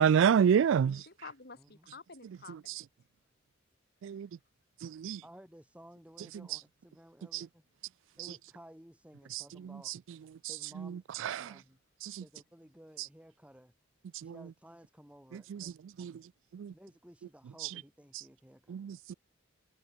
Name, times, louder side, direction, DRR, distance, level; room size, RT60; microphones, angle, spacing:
voice 1, 0.0-1.0 4.0-4.3 4.8-5.2 11.2-11.4 12.1-12.2 14.2-14.3 16.0-16.1 16.5-16.7 18.7-19.1, right 7 dB, 70° right, 0.3 m, -26 dB
voice 2, 0.7-2.8 4.1-4.2, left 4 dB, 55° left, 3.6 m, -51 dB
voice 3, 5.2-7.6 8.2-9.9 10.5-11.0 11.4-11.8 12.2-13.7 14.2-16.1 16.7-18.9, equal, 5° right, 3.6 m, -56 dB
head